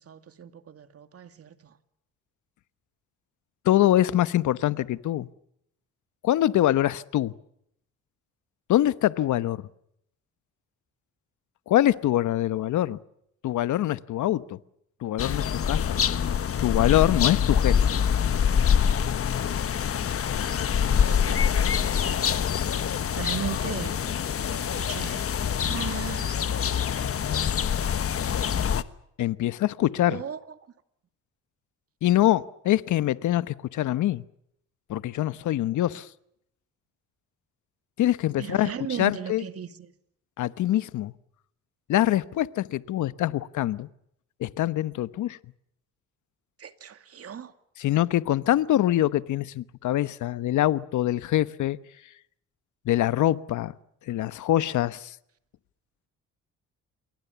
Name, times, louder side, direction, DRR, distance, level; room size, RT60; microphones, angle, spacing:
voice 1, 0.0-1.8 20.8-23.9 24.7-25.3 25.6-26.4 30.0-30.4 38.4-39.9 46.6-47.5, right 8 dB, 50° right, 2.4 m, -37 dB
voice 2, 3.6-5.3 6.2-7.3 8.7-9.6 11.7-13.0 13.4-14.6 15.0-16.0 16.6-17.8 29.2-30.2 32.0-34.2 34.9-36.1 38.0-38.7 39.0-39.4 40.4-41.1 41.9-43.9 44.4-45.4 47.8-51.8 52.8-53.7 54.1-55.2, left 13 dB, 75° left, 1.1 m, -24 dB
sound 1, 15.2-28.8, left 8 dB, 50° left, 1.3 m, -25 dB
28.0 x 22.5 x 7.1 m
cardioid pair, 90°, 30 cm